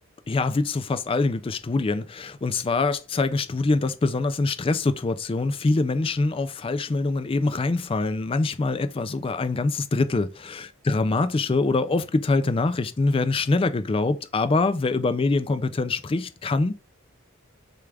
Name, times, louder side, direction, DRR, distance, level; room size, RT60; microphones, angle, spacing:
voice 1, 0.3-16.7, left 3 dB, 25° left, 0.3 m, -24 dB
6.7 x 2.4 x 3.3 m
head